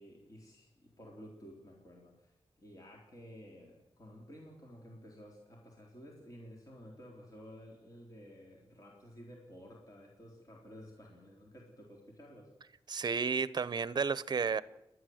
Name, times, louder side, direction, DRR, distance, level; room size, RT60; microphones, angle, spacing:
voice 1, 0.0-12.5, equal, 35° left, -1 dB, 3.6 m, -53 dB
voice 2, 12.9-14.6, right 5 dB, 45° right, 17 dB, 0.7 m, -32 dB
29.5 x 11.5 x 7.8 m, 0.94 s
wide cardioid pair, 155°, 10 cm